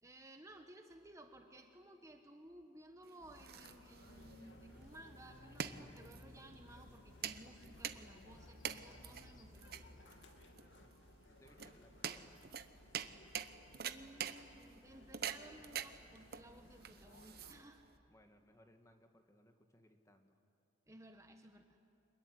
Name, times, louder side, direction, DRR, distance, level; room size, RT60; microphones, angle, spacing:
voice 1, 0.0-9.8 13.8-17.8 20.9-21.8, right 1 dB, 15° right, 5 dB, 1.2 m, -58 dB
sound 1, 3.0-18.0, right 8 dB, 55° right, 1.0 m, -46 dB
sound 2, 3.2-17.6, left 1 dB, 80° left, 2.4 m, -62 dB
sound 3, 4.0-10.1, left 2 dB, 45° left, 1.6 m, -60 dB
voice 2, 11.3-12.4 18.1-20.4, equal, 15° left, 5 dB, 1.8 m, -66 dB
25.5 x 22.0 x 9.9 m, 2.5 s
head